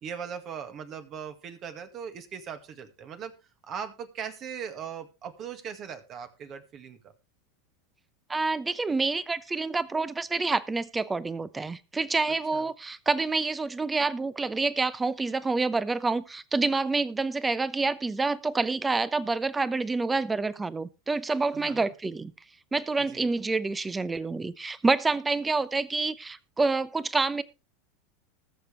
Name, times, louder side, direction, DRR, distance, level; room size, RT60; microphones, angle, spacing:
voice 1, 0.0-3.3 3.6-7.0 12.5-12.6 21.5-21.9 23.0-23.2, right 7 dB, 40° right, 8 dB, 1.9 m, -39 dB
voice 2, 8.3-22.3 22.7-27.4, right 3 dB, 15° right, 18 dB, 0.8 m, -28 dB
20.0 x 6.9 x 3.3 m, 0.29 s
hypercardioid pair, 90°, 0 cm